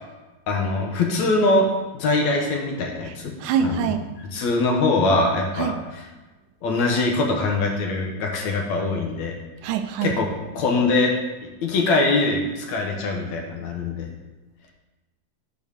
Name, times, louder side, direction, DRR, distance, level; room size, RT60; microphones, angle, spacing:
voice 1, 0.5-1.7 1.9-3.3 3.6-3.9 4.3-6.0 6.6-9.3 10.0-10.3 10.6-11.1 11.6-14.1, left 2 dB, 65° left, 1 dB, 2.1 m, -22 dB
voice 2, 3.4-4.1 5.6-5.8 9.6-10.2, right 7 dB, 75° right, 6 dB, 2.0 m, -24 dB
11.0 x 4.7 x 6.4 m, 1.1 s
omnidirectional pair, 4.2 m